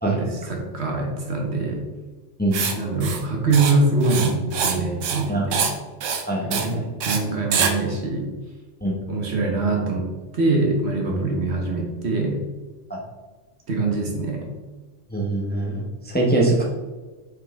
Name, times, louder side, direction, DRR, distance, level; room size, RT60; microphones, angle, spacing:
voice 1, 0.0-1.8 2.8-5.7 6.4-8.3 9.1-10.1 10.3-12.4 13.7-14.5, right 3 dB, 60° right, 0 dB, 1.4 m, -24 dB
Writing, 2.5-2.7 3.0-3.2 3.5-3.7 4.0-4.8 5.0-5.2 5.5-5.7 6.0-6.2 6.5-6.7 7.0-7.2 7.5-7.7, right 6 dB, 90° right, 1.1 m, -24 dB
voice 2, 6.3-6.8 8.8-9.0 12.9-13.0 15.1-16.6, right 2 dB, 10° left, -3 dB, 0.8 m, -23 dB
5.7 x 4.8 x 3.5 m, 1.3 s
omnidirectional pair, 1.3 m